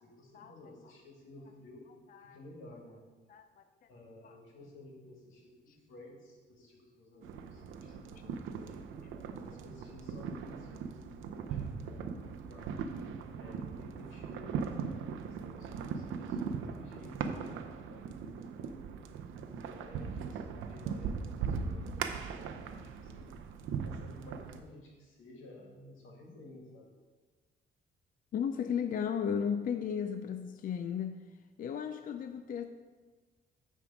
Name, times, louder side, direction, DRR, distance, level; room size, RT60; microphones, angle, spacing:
voice 1, 0.0-1.9 2.2-3.0 3.9-8.9 9.4-12.9 13.4-14.5 15.1-18.2 18.5-18.8 19.4-23.3 23.8-26.9, left 1 dB, 80° left, -1 dB, 2.0 m, -54 dB
voice 2, 3.3-3.6 4.2-4.4 5.7-5.8 28.3-31.2 31.6-32.7, left 7 dB, 45° left, 8 dB, 0.4 m, -35 dB
sound 1, 7.2-24.6, right 6 dB, 85° right, 0.6 m, -39 dB
9.3 x 3.6 x 4.9 m, 1.4 s
cardioid pair, 90°, 20 cm